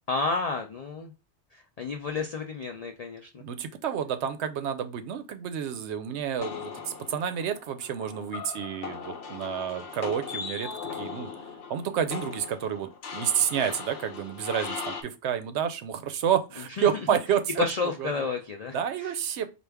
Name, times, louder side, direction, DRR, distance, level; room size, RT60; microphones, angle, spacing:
voice 1, 0.1-1.1 1.8-3.4 16.8-16.9 17.6-18.7 19.0-19.1, left 4 dB, 65° left, 0.3 m, -30 dB
voice 2, 3.4-11.3 11.7-17.6 18.0-18.1 18.7-19.5, right 8 dB, 75° right, 0.8 m, -29 dB
sound 1, 6.4-15.0, left 6 dB, 90° left, 1.0 m, -39 dB
4.5 x 2.4 x 3.4 m
omnidirectional pair, 1.2 m